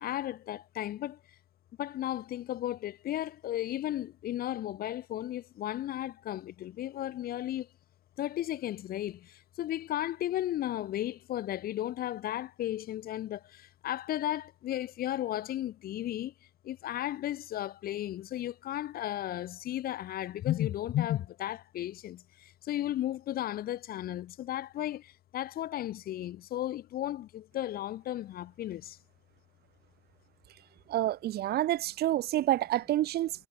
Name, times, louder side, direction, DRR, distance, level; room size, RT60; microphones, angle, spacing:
voice 1, 0.0-1.2 1.8-7.7 8.2-9.2 9.6-13.4 13.8-16.3 16.7-22.2 22.7-25.0 25.3-29.0, left 13 dB, 60° left, 1.1 m, -34 dB
voice 2, 30.9-33.5, right 14 dB, 70° right, 2.1 m, -28 dB
cardioid pair, 110°, 17 cm